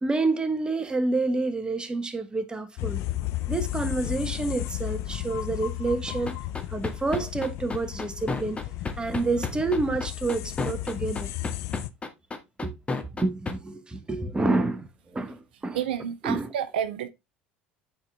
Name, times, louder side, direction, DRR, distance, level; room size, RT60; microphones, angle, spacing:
voice 1, 0.0-3.0 3.5-8.6 9.0-11.3 12.6-12.8 13.1-15.8 16.2-16.5, right 3 dB, 15° right, 1.3 m, -28 dB
sound 1, 2.8-11.9, left 15 dB, 60° left, 0.6 m, -34 dB
sound 2, 6.1-13.5, left 3 dB, 20° left, 1.3 m, -31 dB
voice 2, 15.7-17.1, right 9 dB, 85° right, 0.5 m, -30 dB
8.8 x 3.9 x 3.4 m
hypercardioid pair, 80°, 5 cm